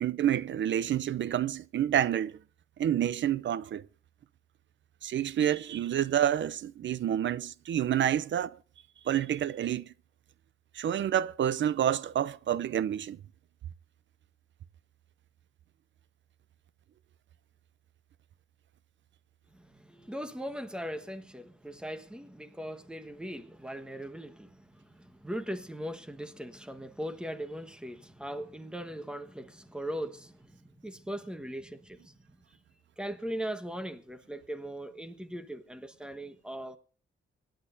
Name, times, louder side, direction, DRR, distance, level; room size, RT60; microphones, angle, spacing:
voice 1, 0.0-2.4 2.8-3.9 5.0-8.6 9.0-9.9 10.7-13.2, right 10 dB, 65° right, 0.6 m, -28 dB
voice 2, 19.5-32.2 33.0-36.8, equal, 5° right, 1.3 m, -39 dB
25.5 x 10.5 x 2.7 m
wide cardioid pair, 135°, 21 cm